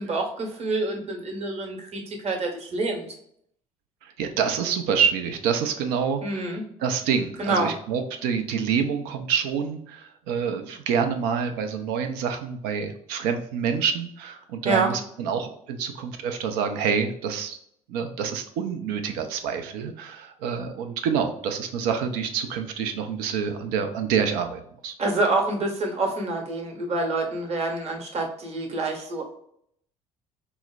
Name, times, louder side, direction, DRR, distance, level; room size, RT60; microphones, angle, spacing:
voice 1, 0.0-3.1 6.2-6.6 7.4-7.7 14.6-14.9 25.0-29.2, right 2 dB, 35° right, 2 dB, 1.1 m, -27 dB
voice 2, 4.0-6.5 6.8-17.6 17.9-25.0, right 6 dB, 65° right, 6 dB, 0.6 m, -27 dB
4.6 x 2.1 x 2.3 m, 0.69 s
figure-of-eight pair, 55°, 18 cm